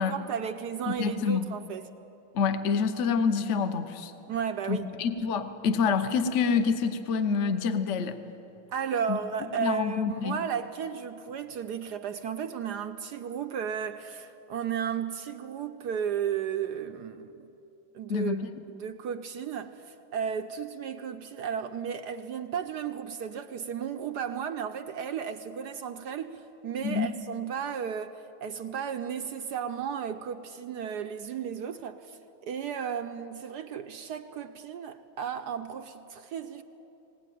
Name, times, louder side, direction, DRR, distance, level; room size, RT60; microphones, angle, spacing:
voice 1, 0.0-1.9 4.3-4.9 8.7-17.5 17.9-18.4 18.7-36.6, right 7 dB, 70° right, 1.0 m, -34 dB
voice 2, 1.0-1.5 2.3-4.1 4.7-8.2 9.1-9.2 9.6-10.4 18.1-18.5 26.8-27.1, left 5 dB, 45° left, 1.0 m, -27 dB
19.5 x 19.5 x 9.2 m
omnidirectional pair, 2.3 m